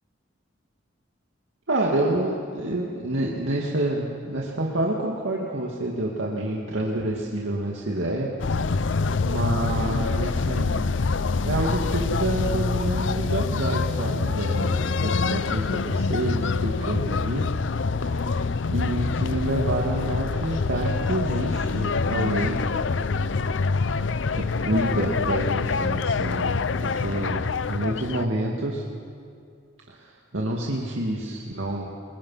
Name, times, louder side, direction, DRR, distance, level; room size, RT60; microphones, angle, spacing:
voice 1, 1.7-8.9 9.2-11.0 11.4-17.5 18.0-18.5 18.7-22.7 24.3-28.8 29.9-31.9, right 1 dB, 85° right, -2 dB, 2.2 m, -28 dB
sound 1, 8.4-28.3, left 4 dB, 70° left, 0.6 m, -25 dB
27.5 x 22.0 x 5.8 m, 2.3 s
head